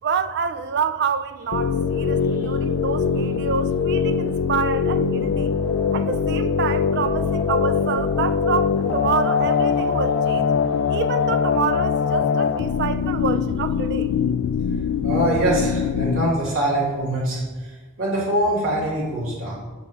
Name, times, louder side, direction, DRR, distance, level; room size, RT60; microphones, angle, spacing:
voice 1, 0.0-5.5 5.9-10.5 10.9-14.1, right 6 dB, 55° right, 0.4 m, -27 dB
sound 1, 1.5-16.3, left 6 dB, 75° left, 0.3 m, -22 dB
Wind, 5.2-11.2, equal, 10° left, 0.6 m, -35 dB
voice 2, 15.0-19.6, right 1 dB, 85° right, 2.3 m, -23 dB
8.1 x 3.6 x 6.3 m
head